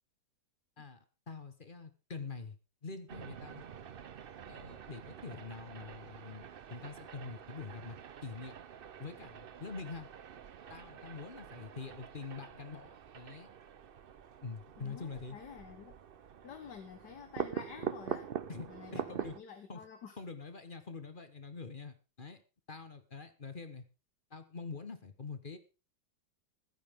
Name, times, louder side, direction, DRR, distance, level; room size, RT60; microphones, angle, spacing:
voice 1, 1.3-2.6 2.8-3.6 4.5-8.6 9.0-10.1 10.7-13.5 14.4-15.4 18.5-19.4 19.7-19.8 20.2-22.4 22.7-23.8 24.3-25.6, left 4 dB, 30° left, 10 dB, 1.2 m, -45 dB
sound 1, 3.1-19.4, right 8 dB, 85° right, 0.5 m, -45 dB
voice 2, 14.8-15.9 16.4-18.3 18.7-20.2, left 7 dB, 65° left, 7 dB, 1.8 m, -49 dB
15.0 x 13.0 x 3.7 m, 0.31 s
omnidirectional pair, 2.0 m